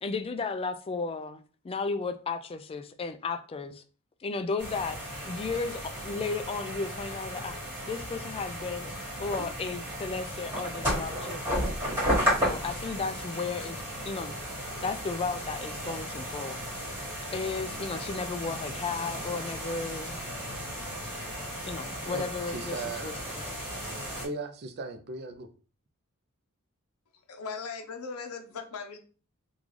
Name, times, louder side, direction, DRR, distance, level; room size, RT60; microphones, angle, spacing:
voice 1, 0.0-3.8 4.2-5.0 5.2-8.9 9.2-11.5 12.4-14.4 14.8-16.6 17.3-20.2 21.6-23.5, left 4 dB, 25° left, 0.3 m, -34 dB
sound 1, 4.6-24.3, equal, 10° right, 1.4 m, -34 dB
voice 2, 22.1-23.1 24.2-25.5, right 3 dB, 50° right, 0.5 m, -37 dB
voice 3, 27.3-29.0, left 5 dB, 85° left, 0.6 m, -38 dB
3.8 x 2.4 x 3.1 m
head